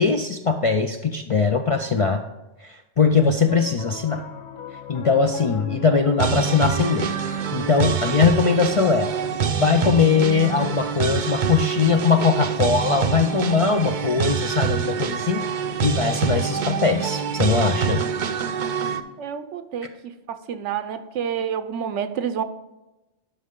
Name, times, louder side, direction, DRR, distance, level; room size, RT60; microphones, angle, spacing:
voice 1, 0.0-2.2 2.6-4.2 4.9-9.1 9.6-15.4 15.8-18.0, left 5 dB, 50° left, 5 dB, 0.4 m, -21 dB
Piano, 3.4-13.9, left 6 dB, 85° left, 1.1 m, -40 dB
sound 1, 6.2-19.0, right 7 dB, 55° right, 0.6 m, -25 dB
voice 2, 19.2-22.4, right 8 dB, 90° right, 10 dB, 1.0 m, -29 dB
11.5 x 5.4 x 3.7 m, 1.0 s
omnidirectional pair, 1.2 m